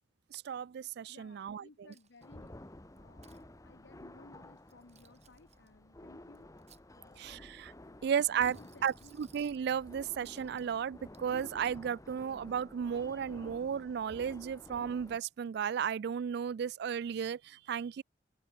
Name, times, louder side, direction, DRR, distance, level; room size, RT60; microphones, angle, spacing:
voice 1, 0.3-1.6 7.2-7.7 8.0-8.6 8.8-8.9 9.2-18.0, right 7 dB, 60° right, 0.3 m, -34 dB
voice 2, 1.1-6.5 6.9-7.4 7.8-9.1, left 3 dB, 70° left, 1.1 m, -60 dB
Coin (dropping), 1.9-2.5 3.0-3.4 4.6-5.7 6.3-7.3 8.2-9.6 10.2-10.8 11.1-11.8, right 9 dB, 35° right, 2.5 m, -64 dB
sound 1, 2.2-15.2, left 1 dB, 20° left, 1.1 m, -52 dB
head